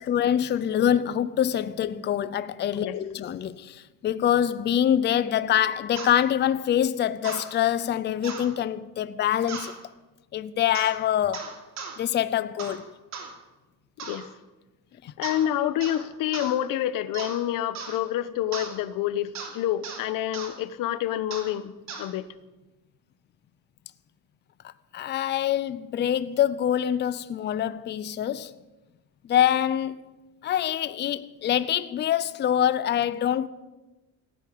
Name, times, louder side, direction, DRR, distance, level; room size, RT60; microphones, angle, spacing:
voice 1, 0.0-9.7 10.3-11.6 12.0-12.9 15.0-15.1 24.6-28.5 29.2-30.0 30.4-33.5, left 10 dB, 30° left, 0.5 m, -25 dB
sound 1, 6.0-6.1 7.2-7.5 8.2-8.5 9.5-9.7 10.7-11.0 11.3-12.0 12.6-12.8 13.1-13.3 14.0-14.3 15.2-15.5 15.8-16.0 16.3-16.5 17.1-17.4 17.8-18.0 18.5-18.7 19.4-19.5 19.8-20.0 20.3-20.5 21.3-21.5 21.9-22.1, right 5 dB, 55° right, 3.1 m, -37 dB
voice 2, 14.0-14.3 15.2-21.7 22.0-22.3, left 12 dB, 70° left, 1.0 m, -28 dB
16.0 x 10.0 x 8.5 m
cardioid pair, 150°, 34 cm